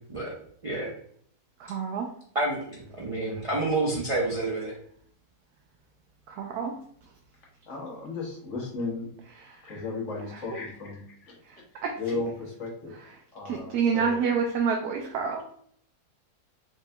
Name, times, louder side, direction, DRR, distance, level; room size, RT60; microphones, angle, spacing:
voice 1, 1.6-2.1 6.3-6.7 11.8-11.9 13.4-15.4, right 6 dB, 80° right, 2 dB, 1.1 m, -27 dB
voice 2, 2.3-4.7, right 2 dB, 50° right, -4 dB, 0.4 m, -28 dB
voice 3, 7.7-9.1 9.5-11.4 12.0-12.9 13.3-14.2, left 3 dB, 55° left, -3 dB, 1.5 m, -35 dB
4.7 x 3.1 x 2.2 m, 0.62 s
omnidirectional pair, 1.6 m